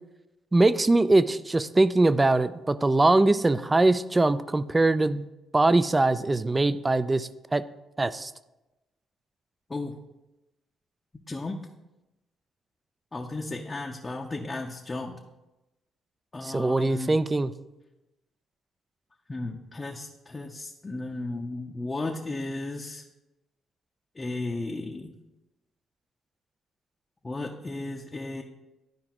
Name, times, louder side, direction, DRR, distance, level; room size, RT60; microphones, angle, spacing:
voice 1, 0.5-5.2 5.5-7.6 8.0-8.3 16.4-17.5, right 2 dB, 20° right, 15 dB, 0.3 m, -22 dB
voice 2, 11.3-11.6 13.1-15.2 16.3-17.2 19.3-23.0 24.2-25.1 27.2-28.4, left 2 dB, 25° left, 0 dB, 0.6 m, -34 dB
11.5 x 4.8 x 3.0 m, 1.0 s
cardioid pair, 90°, 0 cm